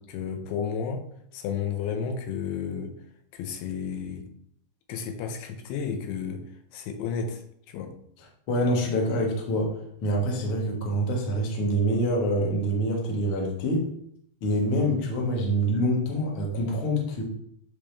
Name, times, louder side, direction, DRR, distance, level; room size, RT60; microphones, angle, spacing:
voice 1, 0.1-1.0 1.3-2.9 3.3-4.3 4.9-6.4 6.7-7.4 7.7-7.9, left 6 dB, 85° left, 5 dB, 2.8 m, -32 dB
voice 2, 8.5-9.7 10.0-13.8 14.4-17.2, equal, 60° left, -1 dB, 1.4 m, -25 dB
10.0 x 3.7 x 3.4 m, 0.69 s
omnidirectional pair, 4.6 m